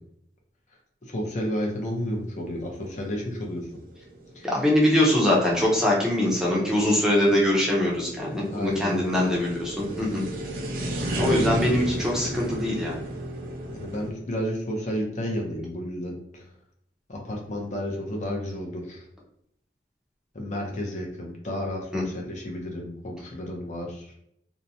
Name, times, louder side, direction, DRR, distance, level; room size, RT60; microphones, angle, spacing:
voice 1, 1.0-3.7 4.3-4.5 8.5-9.3 9.8-10.2 13.7-16.5 17.1-19.1 20.3-24.2, equal, 45° left, 0 dB, 0.5 m, -32 dB
sound 1, 1.6-14.1, right 1 dB, 55° right, 0.5 m, -34 dB
voice 2, 4.4-10.2 11.2-13.0 21.9-22.0, left 1 dB, 5° right, -4 dB, 0.6 m, -23 dB
2.6 x 2.1 x 2.6 m, 0.74 s
head